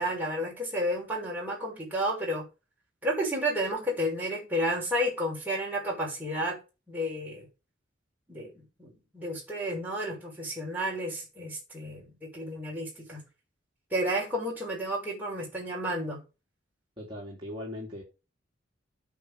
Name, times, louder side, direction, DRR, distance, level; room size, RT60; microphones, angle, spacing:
voice 1, 0.0-2.4 3.0-6.6 6.9-7.5 8.3-13.2 13.9-16.2, equal, 10° right, 5.9 m, -31 dB
voice 2, 17.0-18.0, left 1 dB, 25° right, 3.7 m, -39 dB
9.5 x 6.1 x 6.9 m
head